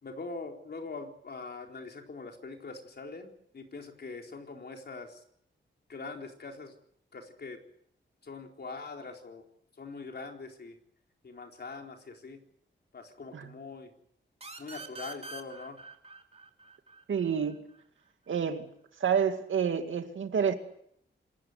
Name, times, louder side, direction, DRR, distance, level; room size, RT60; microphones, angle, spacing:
voice 1, 0.0-5.2 5.9-6.7 7.1-7.6 8.2-9.5 9.8-10.8 11.2-12.4 12.9-13.9 14.6-15.8, left 3 dB, 55° left, 4.1 m, -43 dB
sound 1, 14.4-17.8, right 3 dB, 30° right, 3.1 m, -46 dB
voice 2, 17.1-17.7 18.3-18.7 19.0-20.6, right 7 dB, 85° right, 2.3 m, -28 dB
27.0 x 14.5 x 9.5 m
wide cardioid pair, 120°, 20 cm